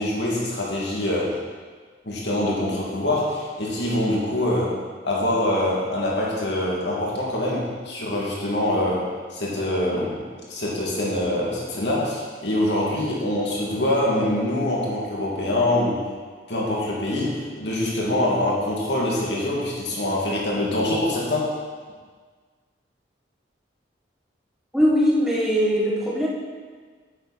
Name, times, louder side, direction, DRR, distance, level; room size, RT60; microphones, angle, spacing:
voice 1, 0.0-1.3 2.0-4.7 5.0-10.2 10.5-16.0 16.5-21.5, left 1 dB, 70° left, -5 dB, 2.5 m, -24 dB
voice 2, 24.7-26.3, equal, ahead, -5 dB, 1.3 m, -20 dB
9.8 x 8.1 x 4.3 m, 1.5 s
head